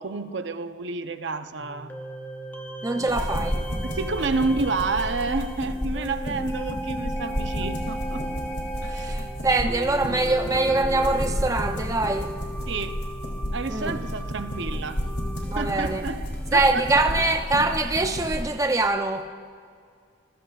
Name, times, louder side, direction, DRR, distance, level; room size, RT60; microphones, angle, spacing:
voice 1, 0.0-1.9 3.0-3.3 3.8-8.2 8.8-9.3 12.7-13.0 13.5-15.1 15.6-16.8, right 4 dB, 65° right, 0.7 m, -30 dB
sound 1, 1.6-17.3, right 1 dB, 10° left, 0.9 m, -37 dB
voice 2, 2.8-3.6 8.8-12.4 13.7-14.0 15.5-16.0 16.5-19.3, right 2 dB, 15° right, 0.5 m, -24 dB
sound 2, 3.1-18.4, equal, 55° left, 2.9 m, -32 dB
26.0 x 15.5 x 2.4 m
head